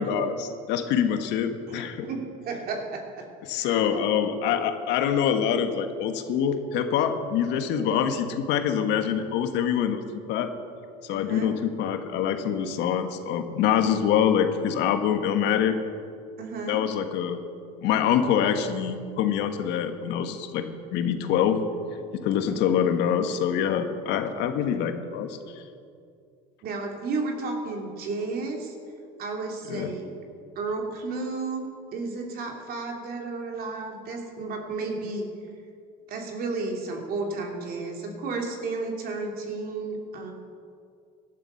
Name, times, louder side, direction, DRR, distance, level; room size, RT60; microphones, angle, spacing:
voice 1, 0.0-2.1 3.5-10.0 10.3-10.5 11.0-15.8 16.7-17.4 17.8-20.6 20.9-21.6 22.1-25.6 29.7-29.9, left 8 dB, 65° left, 7 dB, 1.4 m, -25 dB
voice 2, 1.7-4.1 7.7-8.1 11.1-11.5 16.4-16.8 26.6-28.7 29.2-30.1 30.5-35.3 36.1-40.3, right 3 dB, 50° right, 2 dB, 2.8 m, -33 dB
17.5 x 11.5 x 5.7 m, 2.4 s
supercardioid pair, 110°, 19 cm